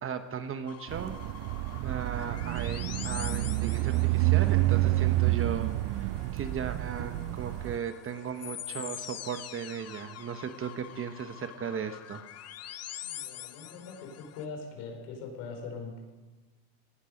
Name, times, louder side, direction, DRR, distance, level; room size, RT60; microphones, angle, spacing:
voice 1, 0.0-1.1 1.8-5.7 6.0-12.2, right 7 dB, 30° right, 9 dB, 1.2 m, -36 dB
sound 1, 0.7-14.5, left 12 dB, 35° left, 0.8 m, -45 dB
sound 2, 0.9-7.8, right 18 dB, 50° right, 0.5 m, -28 dB
voice 2, 13.1-16.0, left 4 dB, 70° left, 2 dB, 5.3 m, -41 dB
18.5 x 12.0 x 5.2 m, 1.2 s
supercardioid pair, 115°, 43 cm